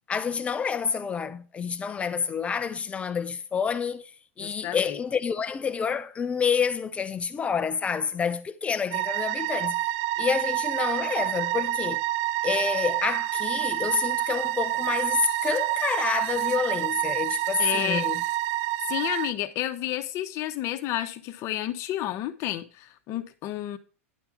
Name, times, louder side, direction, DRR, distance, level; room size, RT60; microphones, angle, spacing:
voice 1, 0.1-4.1 4.4-9.8 10.2-12.0 12.4-18.2, left 6 dB, 15° left, 0.4 m, -28 dB
voice 2, 4.4-5.0 17.6-18.1 18.9-23.8, left 13 dB, 35° left, 0.8 m, -31 dB
sound 1, 8.9-19.3, right 15 dB, 45° right, 0.4 m, -28 dB
10.0 x 3.5 x 7.1 m
hypercardioid pair, 130°, 8 cm